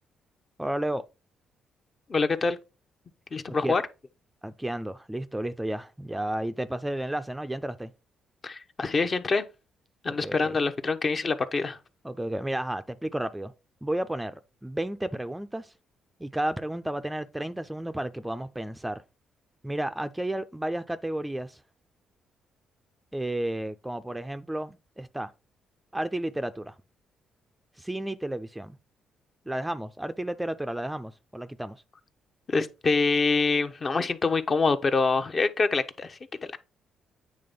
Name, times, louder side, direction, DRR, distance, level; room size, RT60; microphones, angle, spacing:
voice 1, 0.6-1.1 3.6-3.8 4.4-7.9 10.1-10.6 12.0-13.5 13.8-15.7 16.2-19.0 19.6-21.6 23.1-25.3 25.9-26.8 27.8-28.8 29.5-31.8, right 1 dB, 10° right, 0.5 m, -32 dB
voice 2, 2.1-2.6 3.3-3.8 8.4-9.4 10.0-11.8 32.5-36.2, left 4 dB, 35° left, 0.9 m, -25 dB
8.7 x 3.4 x 5.3 m
cardioid pair, 90°, 0 cm